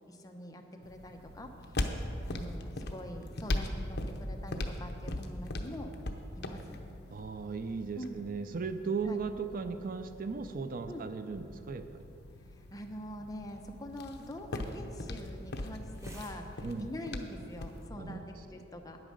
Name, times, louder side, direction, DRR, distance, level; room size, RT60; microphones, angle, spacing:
voice 1, 0.1-1.8 2.3-5.9 6.4-6.8 7.9-8.2 9.0-9.2 10.9-11.1 12.5-19.0, equal, 20° left, 3 dB, 0.8 m, -44 dB
sound 1, 0.8-17.9, left 1 dB, 60° left, 0.8 m, -40 dB
voice 2, 7.1-12.0 16.6-16.9 18.0-18.3, right 5 dB, 50° right, 9 dB, 0.5 m, -37 dB
sound 2, 13.4-18.4, right 1 dB, 15° right, 1.5 m, -61 dB
9.7 x 8.8 x 6.4 m, 2.8 s
head